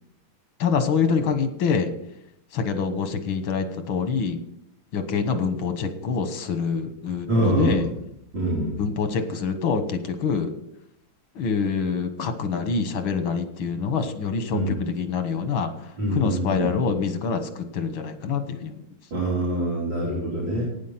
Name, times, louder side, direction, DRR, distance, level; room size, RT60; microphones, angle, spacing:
voice 1, 0.6-1.9 2.5-4.4 4.9-7.8 8.8-10.5 11.4-15.7 16.1-18.8, left 5 dB, 85° left, 8 dB, 2.1 m, -25 dB
voice 2, 7.3-7.9 8.3-8.7 14.5-14.8 16.0-16.7 19.1-20.6, right 1 dB, 70° right, -8 dB, 4.6 m, -24 dB
12.5 x 9.5 x 5.8 m, 0.78 s
omnidirectional pair, 2.1 m